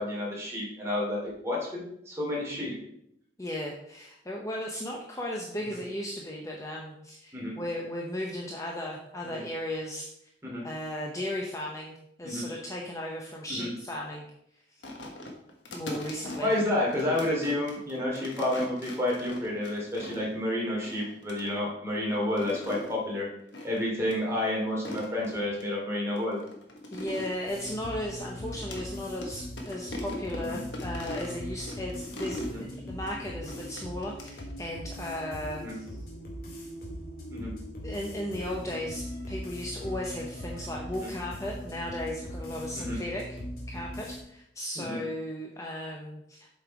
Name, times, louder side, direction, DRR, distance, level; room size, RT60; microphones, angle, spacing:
voice 1, 0.0-2.7 7.3-7.5 10.4-10.6 12.2-12.4 13.5-13.7 16.4-23.3 23.6-26.4 30.4-30.6 32.3-32.6 35.6-35.7 37.3-37.5 41.0-41.1 42.7-43.0 44.7-45.0, left 1 dB, 15° right, -4 dB, 2.7 m, -30 dB
voice 2, 3.4-10.1 10.6-14.3 15.7-16.5 26.9-36.0 37.8-43.4 43.7-46.5, left 1 dB, 15° left, -1 dB, 0.8 m, -36 dB
sound 1, 14.8-20.4 20.8-21.5 22.2-23.0 23.5-23.8 24.1-24.2 24.7-25.6 26.2-28.9 29.2-29.3 29.6-32.6 33.5-34.5, left 1 dB, 70° left, 1.3 m, -41 dB
sound 2, 27.5-44.2, equal, 55° left, 2.1 m, -40 dB
7.6 x 5.4 x 4.7 m, 0.76 s
head